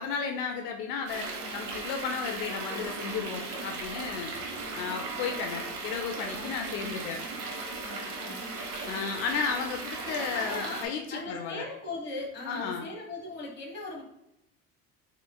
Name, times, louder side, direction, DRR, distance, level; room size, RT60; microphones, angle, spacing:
voice 1, 0.0-4.3 4.7-7.2 8.9-11.7 12.5-12.9, left 6 dB, 85° left, 4 dB, 0.6 m, -34 dB
sound 1, 1.1-10.9, right 3 dB, 65° right, 1.2 m, -37 dB
voice 2, 7.8-8.5 10.3-10.8 11.1-14.0, left 3 dB, 35° left, -1 dB, 1.3 m, -38 dB
5.1 x 3.2 x 2.2 m, 0.84 s
cardioid pair, 140°, 30 cm